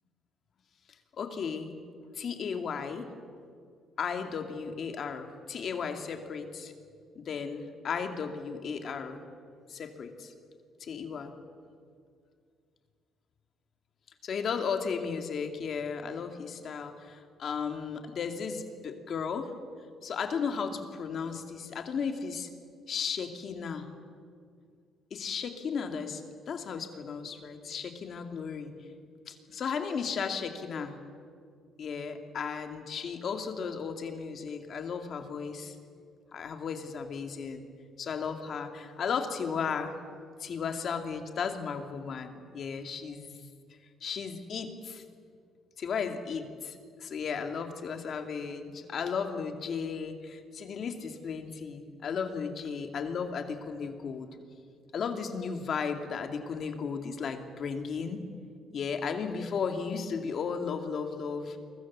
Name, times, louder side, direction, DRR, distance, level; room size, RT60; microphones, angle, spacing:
voice 1, 1.2-1.8 2.1-3.1 4.0-6.7 7.2-9.2 9.7-10.3 10.8-11.3 14.2-19.5 20.0-22.5 22.9-23.9 25.1-28.7 29.3-31.0 31.8-35.8 36.3-37.6 38.0-40.0 40.4-43.3 44.0-45.0 45.8-54.3 54.9-58.2 58.7-61.6, left 6 dB, 40° left, 6 dB, 2.4 m, -35 dB
29.5 x 23.5 x 7.4 m, 2.2 s
cardioid pair, 170°, 0 cm